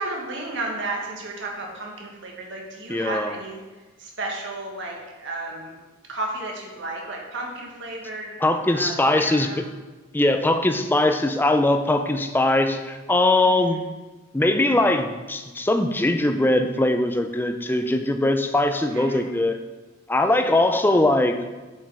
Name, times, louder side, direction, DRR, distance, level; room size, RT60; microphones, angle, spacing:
voice 1, 0.0-3.6 4.0-5.7 6.1-8.4 8.7-9.7 13.4-13.8 18.7-19.3, right 2 dB, 60° right, -1 dB, 1.6 m, -33 dB
voice 2, 2.9-3.3 8.4-9.5 10.1-13.8 14.3-19.6 20.1-21.4, left 1 dB, 10° left, 7 dB, 0.4 m, -21 dB
7.3 x 5.2 x 4.9 m, 1.2 s
head